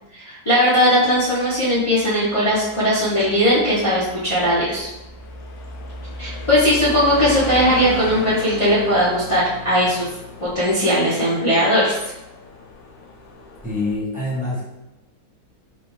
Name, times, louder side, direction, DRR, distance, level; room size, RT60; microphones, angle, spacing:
voice 1, 0.3-4.9 6.2-10.1 10.5-11.9, equal, 35° left, -11 dB, 0.5 m, -18 dB
sound 1, 1.0-14.0, left 2 dB, 80° left, 1.3 m, -35 dB
voice 2, 13.6-14.7, left 2 dB, 5° right, -8 dB, 1.0 m, -25 dB
4.0 x 2.6 x 3.5 m, 0.96 s
omnidirectional pair, 2.0 m